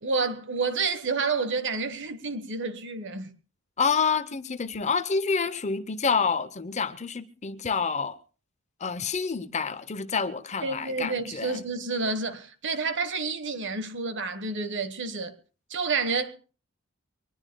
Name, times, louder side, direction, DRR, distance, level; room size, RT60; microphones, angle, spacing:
voice 1, 0.0-3.3 10.6-15.4 15.7-16.3, right 4 dB, 55° right, 1.4 m, -29 dB
voice 2, 3.8-8.2 8.8-11.6, left 5 dB, 30° left, 0.7 m, -28 dB
24.0 x 20.0 x 2.3 m
head